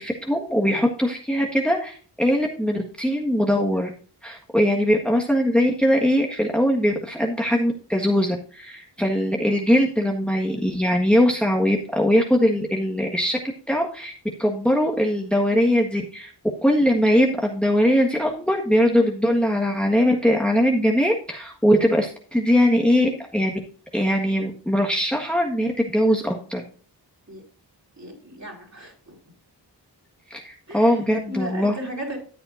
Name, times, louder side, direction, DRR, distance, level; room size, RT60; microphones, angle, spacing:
voice 1, 0.0-3.9 4.2-13.4 13.7-14.1 14.4-16.3 16.6-23.6 23.9-26.6 30.3-31.8, equal, ahead, 1 dB, 1.5 m, -21 dB
voice 2, 28.0-29.2 30.7-31.0 31.3-32.2, equal, 40° right, 0 dB, 4.6 m, -35 dB
13.5 x 7.7 x 2.6 m, 0.42 s
cardioid pair, 50°, 43 cm